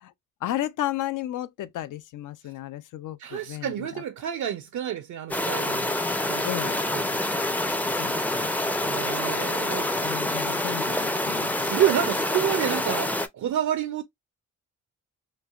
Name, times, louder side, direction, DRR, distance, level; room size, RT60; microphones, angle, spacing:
voice 1, 0.4-4.0 6.4-6.8 8.0-8.5 10.0-11.7, left 13 dB, 80° left, 0.4 m, -33 dB
voice 2, 3.2-5.9 6.2-7.2 8.8-9.9 11.4-14.0, right 10 dB, 70° right, 0.5 m, -29 dB
sound 1, 5.3-13.3, left 1 dB, 5° left, 0.4 m, -27 dB
3.1 x 2.4 x 2.3 m
cardioid pair, 75°, 31 cm